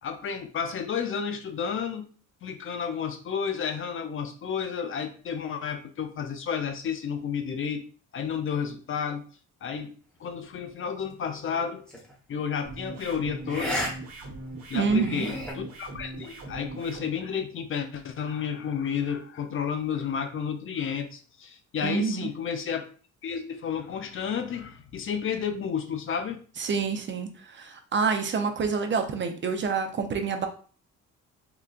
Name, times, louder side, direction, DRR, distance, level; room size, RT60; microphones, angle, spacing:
voice 1, 0.0-2.1 2.4-7.8 8.1-9.3 9.6-11.9 12.3-13.8 14.7-22.8 23.2-26.4, left 7 dB, 45° left, 8 dB, 0.4 m, -31 dB
sound 1, 11.9-12.1 13.5-13.9 14.3-14.4 14.9-15.5, equal, 5° left, 1.0 m, -32 dB
sound 2, 12.6-17.0, right 2 dB, 60° right, 1.1 m, -41 dB
voice 2, 14.7-15.3 21.8-22.3 26.6-30.5, right 5 dB, 40° right, 6 dB, 0.5 m, -27 dB
3.8 x 2.2 x 2.3 m, 0.41 s
cardioid pair, 90°, 30 cm